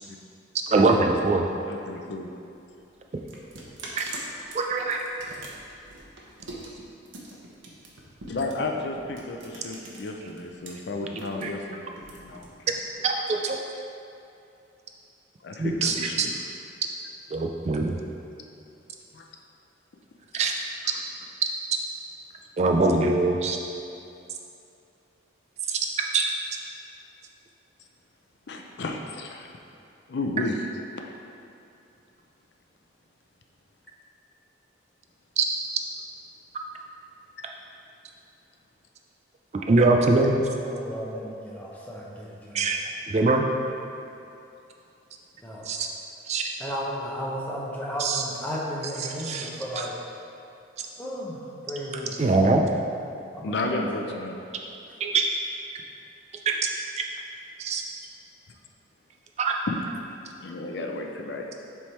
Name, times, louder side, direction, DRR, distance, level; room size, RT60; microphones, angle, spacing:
voice 1, 0.5-1.5 3.1-3.2 4.0-4.1 4.5-5.0 11.3-11.5 13.0-13.6 15.6-16.3 17.3-18.0 20.3-20.5 22.6-23.6 25.7-26.2 35.4-35.5 39.5-40.4 42.5-42.8 43.1-43.5 45.6-45.9 46.3-46.5 48.0-48.2 49.0-49.5 49.8-49.9 50.8-50.9 52.2-52.6 55.0-55.2 56.5-56.7 57.0-57.1 57.6-57.8 59.4-59.6, right 3 dB, 35° right, 2 dB, 0.3 m, -23 dB
voice 2, 1.7-2.3 8.3-12.6 15.4-16.3 19.1-19.3 28.5-29.5 30.1-30.6 53.4-54.3 59.7-59.8 60.4-61.5, left 2 dB, 60° left, 2 dB, 0.5 m, -32 dB
sound 1, 2.6-10.7 11.0-12.9, right 2 dB, 85° right, 1.0 m, -43 dB
voice 3, 40.6-42.7 45.4-45.7 46.6-49.9 51.0-52.1 53.3-53.7 54.0-54.2, equal, 10° left, -5 dB, 0.8 m, -34 dB
7.4 x 3.5 x 4.2 m, 2.7 s
head